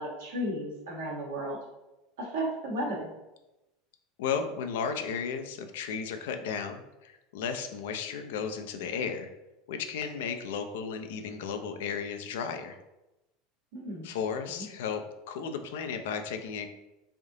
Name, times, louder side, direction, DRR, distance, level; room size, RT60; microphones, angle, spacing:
voice 1, 0.0-1.6 2.2-3.1 13.7-14.1 14.6-14.7, right 1 dB, 75° right, -3 dB, 1.3 m, -34 dB
voice 2, 4.2-9.3 9.7-12.8 14.0-16.7, left 6 dB, 75° left, 7 dB, 0.4 m, -34 dB
3.4 x 2.6 x 3.7 m, 0.98 s
hypercardioid pair, 90°, 0 cm